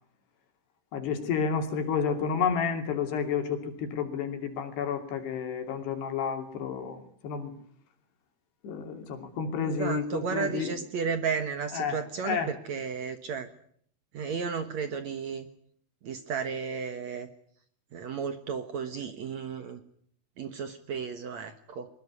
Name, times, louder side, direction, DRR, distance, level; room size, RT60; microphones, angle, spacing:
voice 1, 0.9-7.5 8.6-10.8 11.7-12.5, left 6 dB, 85° left, 6 dB, 5.0 m, -31 dB
voice 2, 9.6-13.5 14.1-15.5 16.0-17.3 17.9-19.8 20.4-21.9, right 6 dB, 60° right, 9 dB, 2.1 m, -33 dB
22.5 x 20.5 x 9.7 m, 0.63 s
omnidirectional pair, 4.7 m